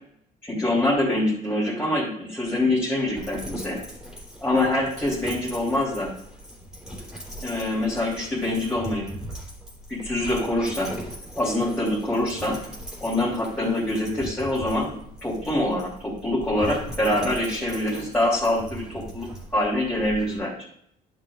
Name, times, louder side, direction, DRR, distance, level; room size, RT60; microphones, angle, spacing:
voice 1, 0.4-3.8 4.4-6.1 7.4-9.1 9.9-10.9 11.4-12.6 13.0-20.6, left 1 dB, 10° left, -8 dB, 3.3 m, -25 dB
Dog, 3.1-20.4, equal, 5° right, 3.3 m, -40 dB
11.0 x 7.6 x 2.5 m, 0.70 s
cardioid pair, 110°, 17 cm